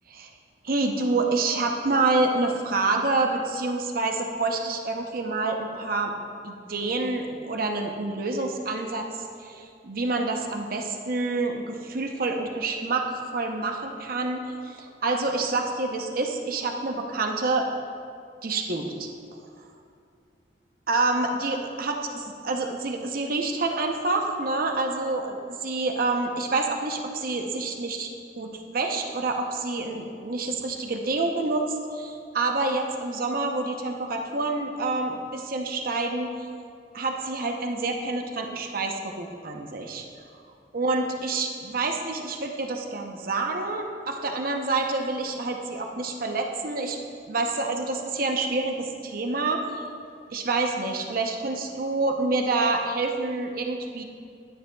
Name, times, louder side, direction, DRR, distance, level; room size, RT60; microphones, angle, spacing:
voice 1, 0.6-6.1 6.4-9.1 9.4-13.0 13.3-17.7 18.4-19.1 20.9-36.3 36.9-40.0 40.7-47.0 47.3-49.7 50.3-54.0, right 3 dB, 50° right, 3 dB, 0.7 m, -27 dB
12.5 x 10.0 x 2.3 m, 2.4 s
head